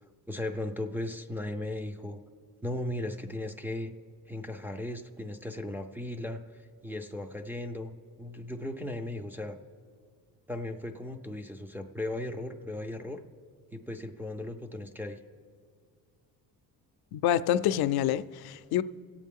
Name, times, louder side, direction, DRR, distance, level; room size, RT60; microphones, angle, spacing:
voice 1, 0.3-2.2 2.6-3.9 4.3-9.6 10.5-13.2 13.7-15.2, left 1 dB, 5° right, 0.3 m, -37 dB
voice 2, 17.1-18.8, left 11 dB, 80° left, 0.5 m, -27 dB
25.0 x 8.4 x 3.6 m
cardioid pair, 155°, 37 cm